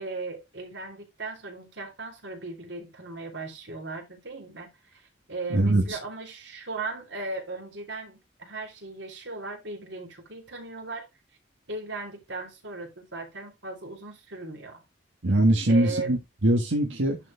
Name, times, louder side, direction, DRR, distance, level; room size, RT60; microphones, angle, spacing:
voice 1, 0.0-5.0 5.3-11.1 11.7-14.8 15.7-16.2, right 3 dB, 70° right, 3.0 m, -37 dB
voice 2, 5.5-6.0 15.2-17.2, right 1 dB, 85° right, 1.4 m, -22 dB
10.5 x 4.6 x 3.4 m
head